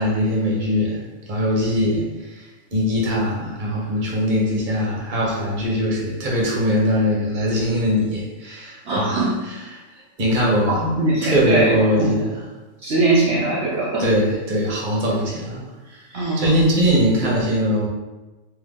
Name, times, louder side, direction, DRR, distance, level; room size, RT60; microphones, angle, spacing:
voice 1, 0.0-9.3 9.7-10.8 11.2-12.4 14.0-15.6 15.9-17.9, equal, 40° right, -4 dB, 1.1 m, -21 dB
voice 2, 8.8-9.4 10.4-12.1 12.8-14.1 15.1-15.2 16.1-16.6, right 2 dB, 65° right, -5 dB, 1.0 m, -21 dB
3.6 x 3.1 x 3.6 m, 1.1 s
omnidirectional pair, 1.3 m